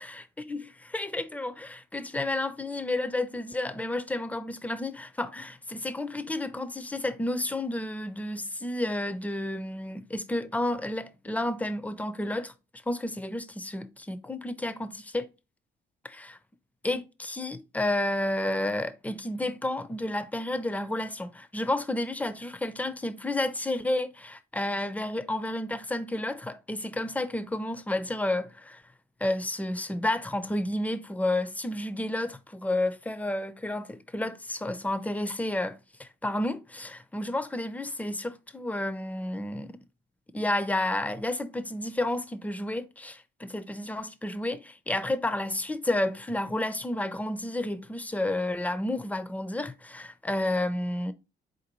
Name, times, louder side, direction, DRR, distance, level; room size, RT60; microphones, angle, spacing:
voice 1, 0.0-12.5 12.9-15.3 16.0-16.4 16.8-28.8 29.2-39.8 40.3-51.1, left 1 dB, 5° left, 0.5 m, -31 dB
4.0 x 3.9 x 2.9 m
cardioid pair, 90°, 20 cm